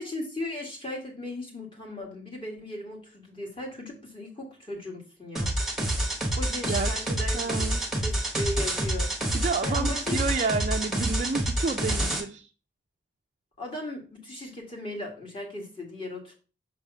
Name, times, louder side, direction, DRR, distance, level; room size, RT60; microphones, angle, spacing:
voice 1, 0.0-5.5 6.4-9.1 9.6-10.5 13.6-16.3, left 1 dB, 25° left, 1.7 m, -37 dB
sound 1, 5.4-12.2, right 1 dB, ahead, 1.0 m, -28 dB
voice 2, 6.7-7.8 9.3-12.5, right 4 dB, 35° right, 0.3 m, -30 dB
5.8 x 3.4 x 5.5 m
head